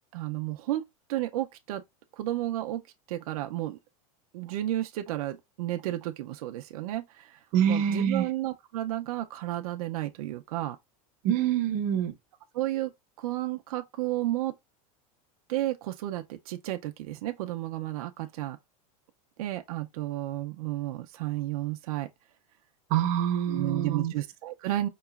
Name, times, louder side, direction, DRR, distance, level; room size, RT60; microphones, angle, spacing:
voice 1, 0.1-0.8 1.1-1.8 2.1-2.8 3.1-3.8 4.3-10.8 12.5-12.9 13.2-14.5 15.5-18.6 19.4-22.1 23.5-24.9, right 14 dB, 80° right, 0.5 m, -32 dB
voice 2, 7.5-8.2 11.2-12.1 22.9-24.1, right 9 dB, 45° right, 0.7 m, -25 dB
4.7 x 2.9 x 2.4 m
supercardioid pair, 150°, 18 cm